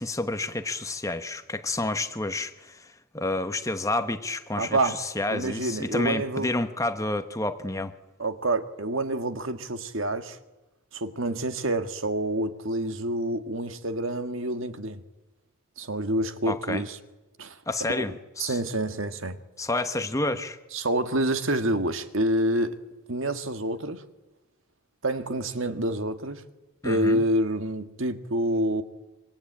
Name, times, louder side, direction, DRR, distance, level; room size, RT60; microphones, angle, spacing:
voice 1, 0.0-7.9 16.5-16.8 17.7-18.6 19.6-20.6 26.8-27.2, left 2 dB, 15° left, 1.1 m, -29 dB
voice 2, 4.6-5.0 5.3-6.5 8.2-10.4 10.9-15.0 15.8-17.0 17.4-17.6 17.9-18.0 18.4-19.4 20.7-22.8 23.1-24.0 25.0-26.4 26.8-28.8, right 1 dB, 60° right, 1.7 m, -27 dB
27.0 x 24.0 x 8.8 m
head